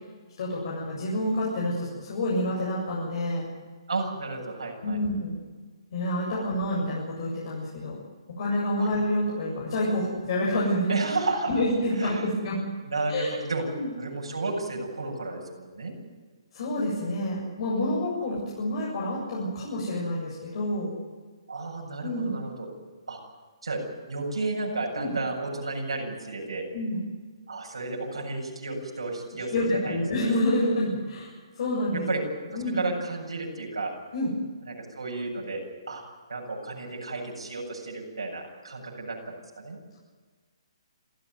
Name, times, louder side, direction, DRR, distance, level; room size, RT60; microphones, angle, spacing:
voice 1, 0.4-3.5 4.8-5.4 5.9-8.0 8.4-10.9 11.5-12.6 13.1-13.4 13.7-13.9 16.5-21.0 22.0-22.3 24.9-25.1 26.7-27.0 29.5-32.0 32.5-32.8 34.1-34.3, left 1 dB, 55° left, -5 dB, 7.7 m, -28 dB
voice 2, 3.9-5.0 6.3-6.4 8.8-8.9 10.9-11.6 12.0-12.3 12.9-13.6 14.0-15.9 21.5-22.7 23.1-23.2 23.6-23.8 24.1-26.6 27.5-30.0 31.9-32.2 32.5-33.9 34.7-35.6 35.9-36.0 36.3-39.8, right 3 dB, 80° right, -1 dB, 7.7 m, -32 dB
28.0 x 14.5 x 9.6 m, 1.5 s
figure-of-eight pair, 135°, 3 cm